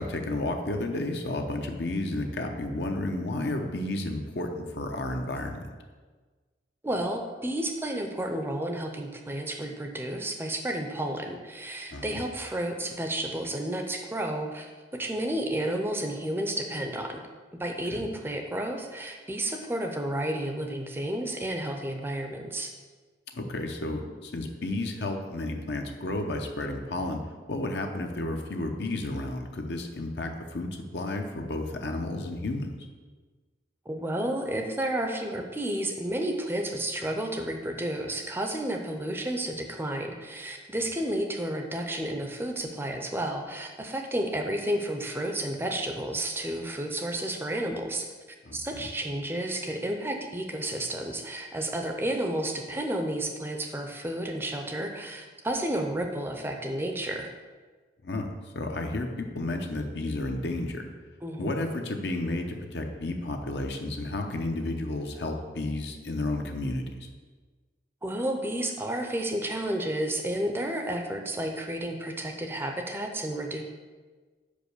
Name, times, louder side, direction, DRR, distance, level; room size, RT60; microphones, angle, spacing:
voice 1, 0.0-5.6 11.9-12.2 17.9-18.0 23.3-27.2 27.5-32.7 48.5-48.8 58.0-58.3 58.5-60.8 61.4-66.9, left 2 dB, 65° left, 4 dB, 0.8 m, -32 dB
voice 2, 6.8-17.2 17.6-22.7 33.9-48.1 48.5-57.3 61.2-61.6 68.0-73.6, right 1 dB, 10° right, 4 dB, 0.5 m, -31 dB
5.3 x 5.2 x 6.6 m, 1.4 s
head